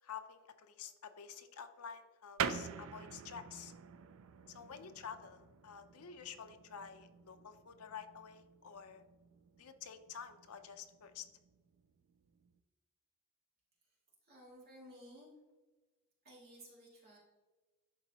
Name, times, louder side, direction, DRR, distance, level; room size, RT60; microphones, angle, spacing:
voice 1, 0.0-3.7 4.5-9.0 9.6-11.3, left 7 dB, 80° left, 8 dB, 0.6 m, -50 dB
sound 1, 2.4-12.6, right 7 dB, 65° right, 0.4 m, -46 dB
voice 2, 13.8-15.4 16.2-17.2, equal, 45° right, -5 dB, 2.2 m, -57 dB
11.5 x 4.0 x 2.8 m, 1.2 s
head